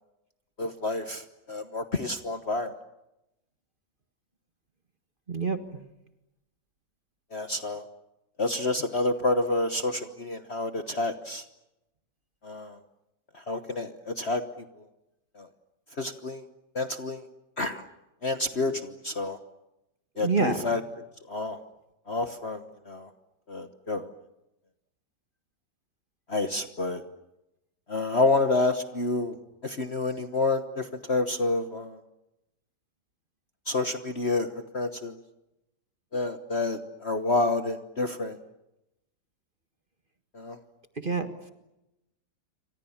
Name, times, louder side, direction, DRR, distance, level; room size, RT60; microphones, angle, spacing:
voice 1, 0.6-2.7 7.3-7.8 8.4-11.4 12.4-12.8 13.3-14.4 15.3-15.5 16.0-16.4 16.7-17.2 17.6-17.8 18.2-19.4 20.2-20.8 21.3-21.6 22.1-23.1 23.5-24.1 26.3-27.0 27.9-29.4 29.6-32.0 33.7-35.2 36.1-38.4 40.3-40.6, left 2 dB, 40° left, 8 dB, 1.3 m, -29 dB
voice 2, 5.3-5.6 20.2-20.7 41.0-41.5, right 4 dB, 30° right, 8 dB, 1.7 m, -27 dB
28.5 x 25.5 x 7.2 m, 0.92 s
omnidirectional pair, 2.1 m